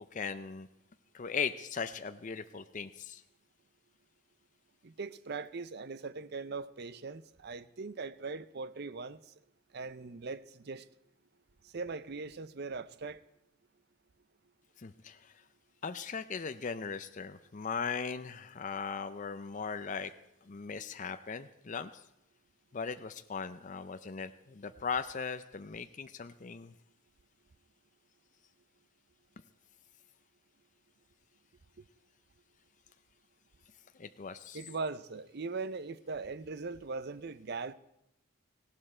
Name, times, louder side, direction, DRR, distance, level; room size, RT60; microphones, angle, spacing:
voice 1, 0.1-0.7 1.1-3.2 14.8-15.3 15.8-20.1 20.5-22.0 22.7-26.7 34.0-34.6, left 5 dB, 35° left, 0.5 m, -38 dB
voice 2, 4.8-9.3 9.7-10.9 11.6-13.2 31.8-31.9 34.5-37.7, right 4 dB, 50° right, 0.6 m, -40 dB
18.5 x 16.5 x 4.4 m
head